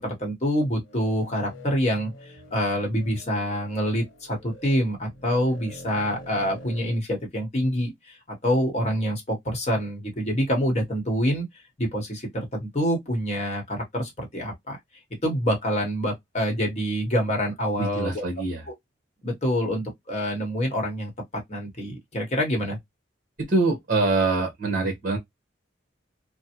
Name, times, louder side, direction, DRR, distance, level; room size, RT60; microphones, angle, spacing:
voice 1, 0.0-11.4 11.8-14.8 15.2-18.2 19.2-21.1 21.5-22.8, equal, 35° left, 1.0 m, -26 dB
sound 1, 0.8-7.0, equal, 90° left, 0.8 m, -45 dB
voice 2, 17.8-18.6 23.4-25.2, right 3 dB, 45° right, 1.1 m, -24 dB
3.1 x 2.1 x 2.8 m
head